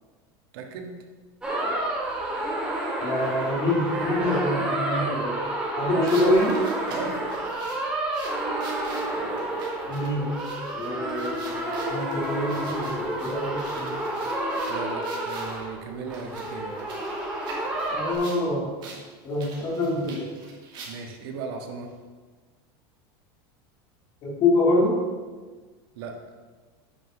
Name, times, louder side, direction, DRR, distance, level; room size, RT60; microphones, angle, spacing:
voice 1, 0.5-0.9 6.9-7.2 14.7-16.8 20.9-21.9 26.0-26.1, right 5 dB, 70° right, 3 dB, 1.6 m, -36 dB
sound 1, 1.4-18.1, right 1 dB, 5° right, 1.9 m, -30 dB
voice 2, 3.0-5.4 5.8-6.6 9.9-10.3 10.7-14.0 17.9-18.7 19.2-20.3 24.2-25.0, left 1 dB, 35° left, -3 dB, 3.0 m, -25 dB
sound 2, 6.1-15.6 16.1-18.4 18.8-19.0 19.3-21.2, right 4 dB, 35° right, 2.5 m, -45 dB
9.1 x 5.7 x 6.4 m, 1.4 s
supercardioid pair, 170°, 13 cm